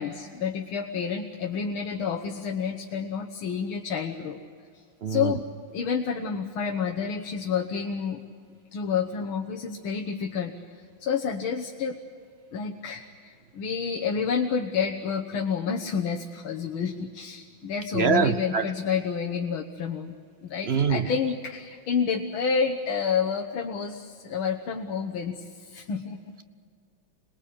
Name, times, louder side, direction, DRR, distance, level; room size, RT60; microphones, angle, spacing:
voice 1, 0.0-4.4 4.7-4.8 5.1-5.5 5.7-8.2 8.7-12.0 12.5-20.1 20.4-26.3, left 6 dB, 90° left, 1 dB, 2.0 m, -29 dB
voice 2, 5.0-5.3 17.9-18.7 20.7-21.1, right 6 dB, 60° right, 10 dB, 0.6 m, -24 dB
26.5 x 20.0 x 8.7 m, 2.2 s
omnidirectional pair, 2.2 m